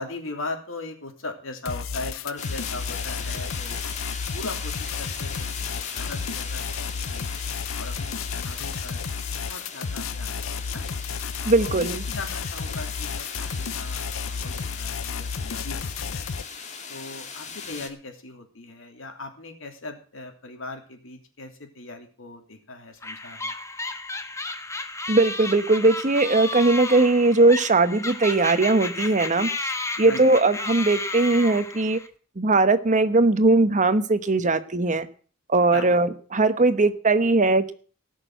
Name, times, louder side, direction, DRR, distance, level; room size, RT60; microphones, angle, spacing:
voice 1, 0.0-3.8 4.3-7.3 7.8-9.1 9.4-10.8 11.5-16.2 16.9-23.5 30.1-30.2 35.7-36.0, left 2 dB, 70° left, 4 dB, 3.1 m, -39 dB
sound 1, 1.7-16.4, left 5 dB, 90° left, 0.7 m, -32 dB
sound 2, 2.4-17.9, left 5 dB, 35° left, 2.3 m, -38 dB
voice 2, 11.5-12.0 25.1-32.0 32.4-35.1 35.5-37.7, right 2 dB, 40° right, 12 dB, 1.0 m, -20 dB
sound 3, 23.0-32.1, left 2 dB, 15° left, 1.2 m, -32 dB
18.5 x 6.4 x 7.9 m, 0.42 s
head